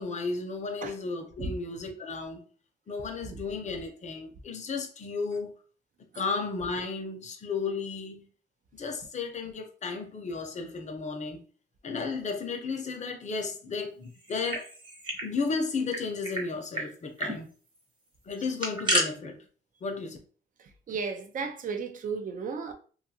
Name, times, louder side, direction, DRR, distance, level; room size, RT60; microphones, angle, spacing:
voice 1, 0.0-2.4 2.9-5.5 6.0-8.3 8.7-11.4 11.8-14.6 15.2-17.5 18.3-19.4 19.8-20.2, left 4 dB, 35° left, 0.6 m, -34 dB
sound 1, 14.2-15.3 15.6-15.7 15.9-16.4 16.7-16.9 17.2-17.4 18.3-19.1, right 1 dB, 25° right, 1.0 m, -30 dB
voice 2, 20.6-22.7, right 5 dB, 40° right, 0.5 m, -34 dB
2.6 x 2.4 x 2.7 m
cardioid pair, 90°, 20 cm